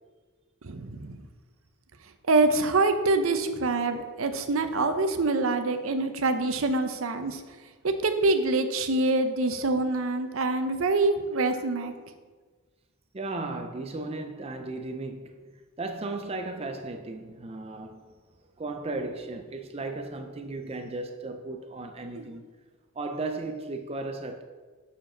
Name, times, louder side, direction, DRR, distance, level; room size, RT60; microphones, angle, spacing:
voice 1, 0.6-1.2 2.3-7.4 7.8-11.9 22.2-22.3, right 2 dB, 75° right, 0.7 m, -25 dB
voice 2, 13.1-15.4 15.8-18.1 18.6-22.5 22.9-24.4, right 2 dB, 30° right, 0.5 m, -35 dB
6.9 x 5.0 x 6.1 m
head